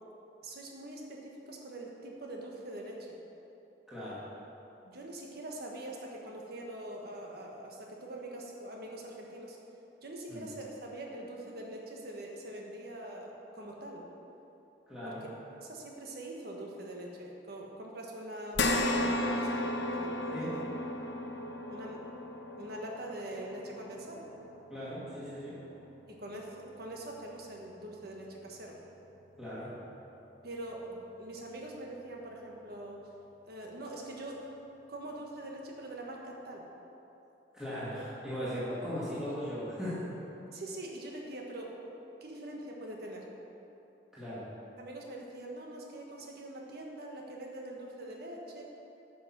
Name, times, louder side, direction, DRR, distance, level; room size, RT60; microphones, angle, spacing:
voice 1, 0.4-3.1 4.8-9.6 10.0-14.0 15.0-15.3 15.6-20.6 21.7-22.0 22.6-24.3 26.1-28.8 30.4-33.0 33.5-34.4 34.9-36.7 38.4-38.6 40.5-41.7 42.2-43.3 44.8-48.6, right 1 dB, 60° right, -1 dB, 1.4 m, -43 dB
voice 2, 3.9-4.2 10.3-10.4 14.9-15.2 20.3-20.6 24.7-25.6 29.4-29.7 37.5-40.2 44.1-44.4, equal, 5° right, -11 dB, 2.1 m, -38 dB
sound 1, 18.5-27.2 27.6-27.7 29.2-29.3, left 1 dB, 75° left, 0.8 m, -35 dB
9.6 x 6.1 x 6.0 m, 3.0 s
head